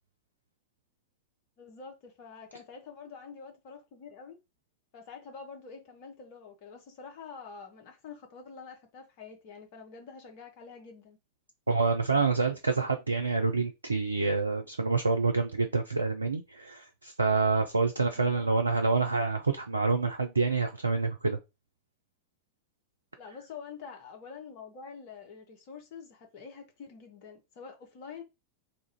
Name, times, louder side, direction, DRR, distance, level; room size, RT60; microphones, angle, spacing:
voice 1, 1.6-4.4 4.9-11.2 18.2-18.5 23.2-28.2, left 5 dB, 45° left, 1.1 m, -47 dB
voice 2, 11.7-21.4, right 4 dB, 80° right, 0.4 m, -27 dB
2.9 x 2.4 x 4.2 m
figure-of-eight pair, 90°, 0 cm